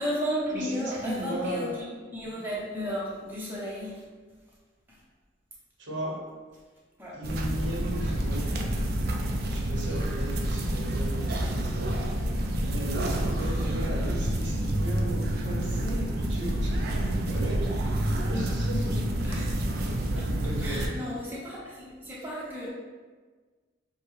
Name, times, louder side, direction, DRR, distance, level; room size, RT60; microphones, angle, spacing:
voice 1, 0.0-1.7 2.1-4.1 4.9-5.0 7.0-7.1 8.0-8.1 9.8-10.1 13.4-13.7 15.5-15.6 17.7-17.8 19.2-19.5 20.1-22.7, equal, 10° right, -6 dB, 0.8 m, -34 dB
voice 2, 0.5-1.8 2.4-2.5 5.8-6.3 7.1-8.5 9.4-12.3 12.6-17.8 18.3-19.1 20.0-20.1 20.4-20.9, right 1 dB, 75° right, -2 dB, 1.0 m, -36 dB
sound 1, 7.2-20.9, right 1 dB, 55° right, 0.5 m, -28 dB
6.4 x 2.2 x 3.1 m, 1.4 s
head